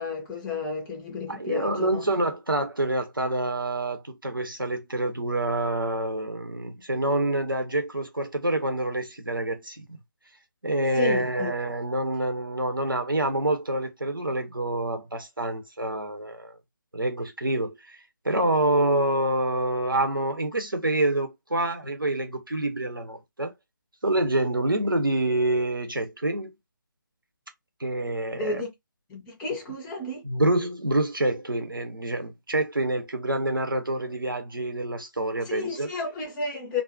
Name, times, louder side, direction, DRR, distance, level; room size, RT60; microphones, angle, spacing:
voice 1, 0.0-2.1 11.0-11.5 28.4-28.7 29.1-30.2 35.4-36.8, left 3 dB, 5° left, 0.4 m, -32 dB
voice 2, 1.3-9.8 10.6-16.5 16.9-18.0 18.2-23.5 24.0-26.5 27.8-28.6 30.2-35.9, right 1 dB, 85° right, 0.8 m, -27 dB
2.4 x 2.0 x 3.7 m
figure-of-eight pair, 150°, 11 cm